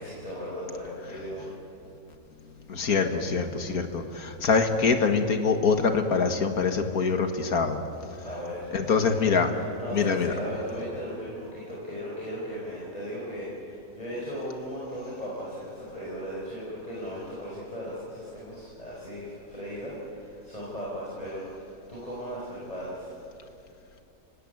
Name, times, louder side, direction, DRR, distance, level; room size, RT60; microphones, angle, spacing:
voice 1, 0.0-1.5 8.2-23.1, equal, 25° left, -6 dB, 5.3 m, -37 dB
voice 2, 2.7-7.8 8.7-9.5 9.9-10.3, left 5 dB, 80° left, 6 dB, 2.1 m, -24 dB
30.0 x 18.0 x 9.3 m, 2.7 s
omnidirectional pair, 1.6 m